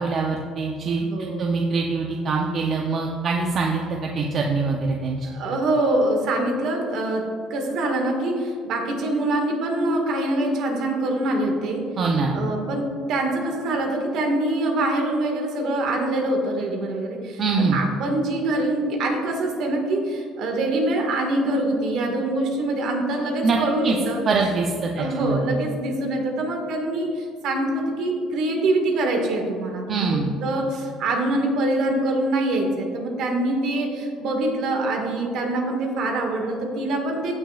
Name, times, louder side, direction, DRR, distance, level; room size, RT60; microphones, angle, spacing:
voice 1, 0.0-1.0 1.4-5.3 12.0-12.4 17.4-17.8 23.4-23.6 23.8-24.0 24.3-25.5 29.9-30.3, right 4 dB, 40° right, 0 dB, 0.7 m, -24 dB
voice 2, 1.0-1.6 5.2-11.9 12.3-24.2 24.9-37.3, right 1 dB, 60° right, 2 dB, 1.8 m, -24 dB
15.5 x 6.1 x 2.4 m, 2.2 s
cardioid pair, 140°, 0 cm